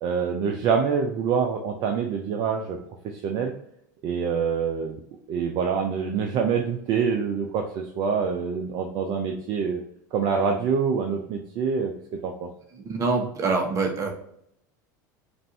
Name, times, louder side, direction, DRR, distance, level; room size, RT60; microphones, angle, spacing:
voice 1, 0.0-2.8 3.0-3.5 4.0-5.0 5.3-9.8 10.1-11.9 12.2-12.5, right 6 dB, 50° right, 3 dB, 0.6 m, -26 dB
voice 2, 12.7-14.1, right 3 dB, 30° right, 2 dB, 1.2 m, -25 dB
5.3 x 2.6 x 2.8 m, 0.71 s
hypercardioid pair, 90°, 10 cm